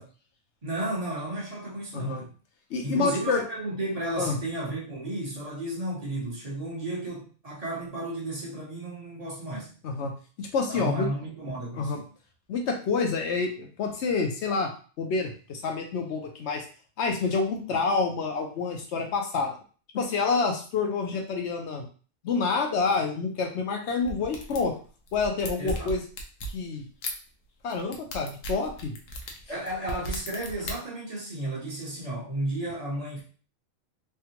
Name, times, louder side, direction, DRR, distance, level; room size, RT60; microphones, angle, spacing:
voice 1, 0.6-2.3 2.8-9.7 10.7-12.1 25.6-26.0 29.5-33.2, right 1 dB, 35° right, -5 dB, 1.0 m, -33 dB
voice 2, 2.7-3.4 4.2-4.4 9.8-11.1 11.8-12.0 12.5-14.7 15.0-16.6 17.0-19.5 19.9-21.8 22.2-24.7 25.1-26.0 26.5-26.9 27.6-28.9, left 4 dB, 65° left, 2 dB, 1.0 m, -28 dB
sound 1, 24.0-24.7 25.1-26.6 27.0-27.1 27.7-30.7, equal, 85° left, 1.0 m, -36 dB
3.4 x 2.3 x 2.8 m, 0.39 s
omnidirectional pair, 1.3 m